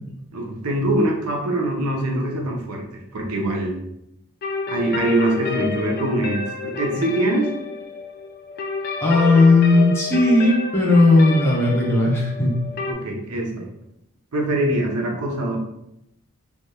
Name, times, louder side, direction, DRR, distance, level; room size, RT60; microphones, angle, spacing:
voice 1, 0.3-3.8 4.7-7.5 12.9-13.7 14.3-15.6, right 1 dB, 75° right, 0 dB, 0.7 m, -23 dB
sound 1, 4.4-12.9, left 5 dB, 45° left, 0.4 m, -29 dB
voice 2, 9.0-12.6, left 2 dB, 10° left, -4 dB, 0.8 m, -16 dB
3.3 x 2.9 x 2.3 m, 0.82 s
head